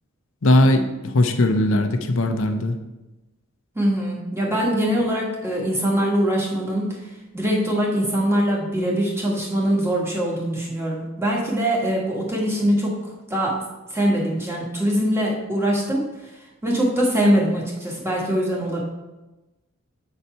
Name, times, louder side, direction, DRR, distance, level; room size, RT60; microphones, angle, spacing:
voice 1, 0.4-2.7, left 1 dB, 70° left, 6 dB, 0.6 m, -19 dB
voice 2, 3.7-7.0 7.3-13.6 13.9-16.0 16.6-18.8, equal, 10° right, -3 dB, 1.5 m, -22 dB
7.8 x 4.2 x 4.4 m, 1.1 s
head